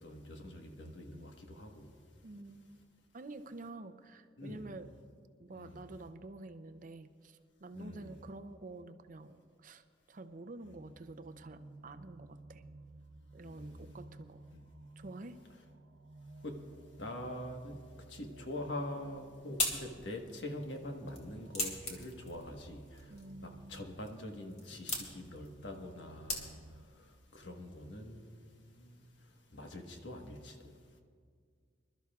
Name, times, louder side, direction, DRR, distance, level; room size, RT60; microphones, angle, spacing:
voice 1, 0.0-2.2 4.4-4.7 5.5-5.8 7.7-8.1 10.7-10.8 13.4-14.0 14.5-14.7 16.4-16.6 17.0-30.8, left 1 dB, 70° left, 1.4 m, -45 dB
voice 2, 2.2-2.8 3.1-5.0 5.4-12.6 13.3-14.4 15.0-15.4 23.1-23.9, right 2 dB, 45° right, 0.6 m, -49 dB
sound 1, 11.4-26.9, right 3 dB, 90° right, 0.7 m, -56 dB
sound 2, 18.9-26.9, left 2 dB, 35° left, 2.0 m, -42 dB
25.5 x 12.5 x 2.4 m
head